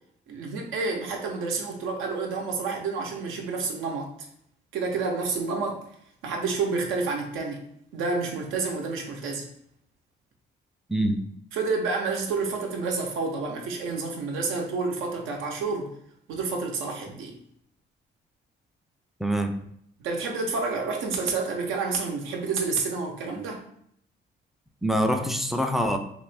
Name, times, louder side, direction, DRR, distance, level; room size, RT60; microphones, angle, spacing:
voice 1, 0.3-4.1 4.7-5.8 6.2-7.6 7.9-9.5 11.5-15.9 16.3-17.4 20.0-23.6, right 4 dB, 90° right, 2 dB, 0.7 m, -29 dB
voice 2, 10.9-11.2 19.2-19.6 24.8-26.0, equal, ahead, 5 dB, 0.3 m, -24 dB
2.9 x 2.5 x 3.2 m, 0.70 s
cardioid pair, 90°, 20 cm